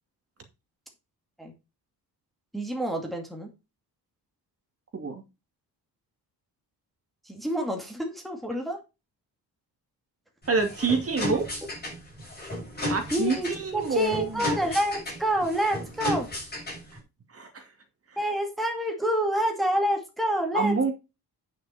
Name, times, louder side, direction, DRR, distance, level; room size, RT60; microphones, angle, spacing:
voice 1, 2.5-3.5 7.3-8.8 13.1-16.3 18.2-20.9, right 1 dB, ahead, 2.2 m, -28 dB
sound 1, 10.4-17.0, left 1 dB, 25° left, 6.4 m, -34 dB
voice 2, 10.5-11.5 12.9-14.4 17.3-17.6 20.5-20.9, right 4 dB, 35° right, 2.6 m, -27 dB
9.7 x 6.3 x 4.4 m
cardioid pair, 140°, 39 cm